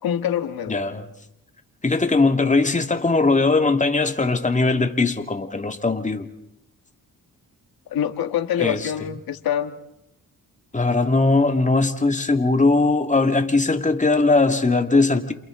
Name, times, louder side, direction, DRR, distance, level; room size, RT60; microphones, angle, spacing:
voice 1, 0.0-0.8 7.9-9.8, left 9 dB, 80° left, 9 dB, 1.7 m, -25 dB
voice 2, 0.7-1.0 1.8-6.3 8.6-8.9 10.7-15.3, left 3 dB, 20° left, 6 dB, 2.1 m, -20 dB
29.5 x 28.0 x 3.8 m, 0.85 s
cardioid pair, 70°, 36 cm